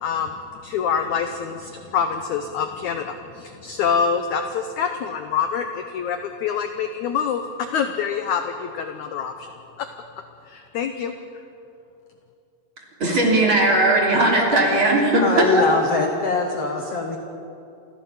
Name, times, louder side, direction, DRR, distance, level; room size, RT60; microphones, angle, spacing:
voice 1, 0.0-9.5 9.8-9.9 10.5-11.1, left 7 dB, 75° left, 7 dB, 1.8 m, -26 dB
voice 2, 13.0-15.6, right 2 dB, 35° right, -2 dB, 3.8 m, -18 dB
voice 3, 15.2-17.2, left 4 dB, 60° left, 3 dB, 1.7 m, -23 dB
28.0 x 15.0 x 7.2 m, 2.7 s
omnidirectional pair, 4.4 m